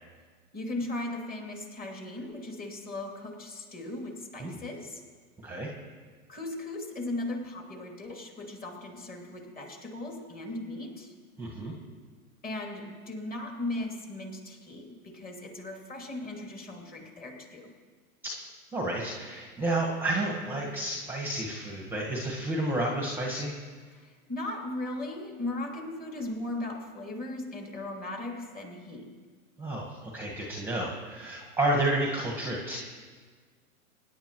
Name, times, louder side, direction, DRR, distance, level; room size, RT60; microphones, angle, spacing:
voice 1, 0.5-5.0 6.3-11.1 12.4-17.7 23.9-29.1, left 2 dB, 20° left, 1 dB, 2.7 m, -37 dB
voice 2, 11.4-11.7 18.2-18.4 18.7-23.6 29.6-32.8, right 1 dB, 5° right, -2 dB, 1.5 m, -31 dB
25.0 x 10.5 x 3.1 m, 1.5 s
hypercardioid pair, 105°, 44 cm